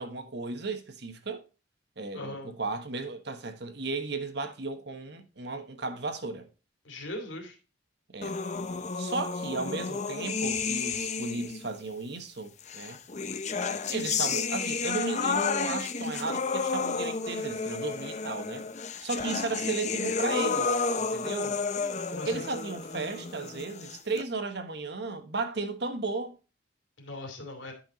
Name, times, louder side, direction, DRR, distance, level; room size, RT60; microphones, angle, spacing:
voice 1, 0.0-1.4 2.0-6.5 8.1-8.4 9.0-13.0 13.9-18.6 19.0-21.6 22.3-26.3, right 3 dB, 60° right, 1.3 m, -35 dB
voice 2, 2.1-2.5 6.8-7.5 22.1-22.4 27.0-27.7, left 1 dB, 85° left, 2.7 m, -39 dB
sound 1, 8.2-11.7 12.7-24.2, left 4 dB, 40° left, 0.7 m, -31 dB
10.5 x 5.7 x 4.0 m
head